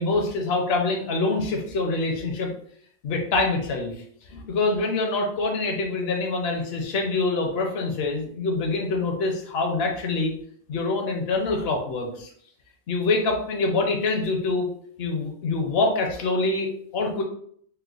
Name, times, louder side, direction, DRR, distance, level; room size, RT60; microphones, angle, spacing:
voice 1, 0.0-2.5 3.0-3.9 4.3-10.3 10.7-12.3 12.9-14.7 15.0-17.2, left 3 dB, 70° left, 1 dB, 0.9 m, -25 dB
4.3 x 2.2 x 2.3 m, 0.62 s
omnidirectional pair, 1.1 m